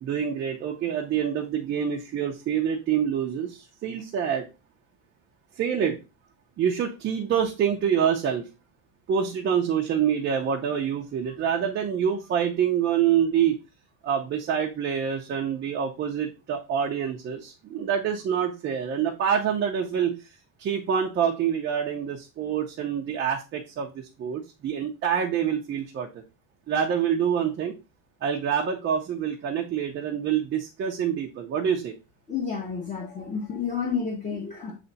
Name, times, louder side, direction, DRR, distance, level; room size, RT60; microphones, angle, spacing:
voice 1, 0.0-4.4 5.6-6.0 6.6-8.5 9.1-13.6 14.0-20.1 20.6-26.1 26.7-27.7 28.2-31.9, right 8 dB, 25° right, 0 dB, 0.7 m, -26 dB
voice 2, 32.3-34.7, left 6 dB, 15° left, -1 dB, 1.2 m, -30 dB
7.9 x 3.3 x 4.0 m, 0.28 s
cardioid pair, 175°, 44 cm